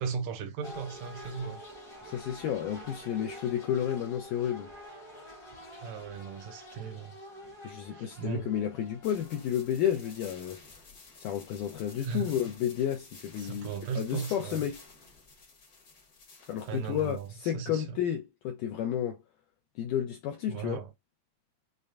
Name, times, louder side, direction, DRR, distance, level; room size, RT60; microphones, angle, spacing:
voice 1, 0.0-1.6 5.8-7.1 7.9-8.5 12.0-12.3 13.4-14.6 16.6-18.0 20.5-20.9, right 6 dB, 75° right, 2.3 m, -37 dB
sound 1, 0.6-10.1, equal, 20° left, 0.7 m, -48 dB
voice 2, 2.0-4.7 7.6-10.6 11.2-13.7 14.0-14.8 16.5-19.2 19.8-20.8, left 10 dB, 80° left, 1.8 m, -31 dB
sound 2, 9.0-17.4, left 3 dB, 55° left, 1.0 m, -52 dB
6.4 x 2.2 x 2.4 m
omnidirectional pair, 4.2 m